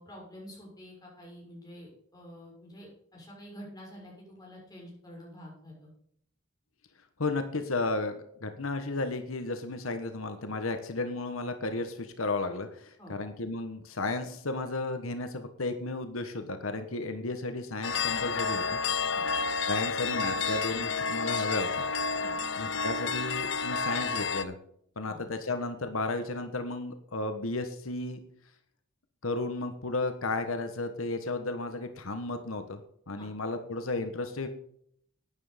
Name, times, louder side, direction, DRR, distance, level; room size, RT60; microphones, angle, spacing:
voice 1, 0.0-5.9 13.0-13.1 19.1-19.3 22.2-22.3 25.0-25.2 33.2-33.3, equal, 20° left, -3 dB, 6.5 m, -48 dB
voice 2, 7.2-18.8 19.7-21.8 22.6-24.6 25.0-28.2 29.2-32.8 33.1-34.5, left 2 dB, 90° left, 8 dB, 1.3 m, -33 dB
sound 1, 17.8-24.4, left 5 dB, 65° left, 0.8 m, -30 dB
12.0 x 9.6 x 5.1 m, 0.67 s
head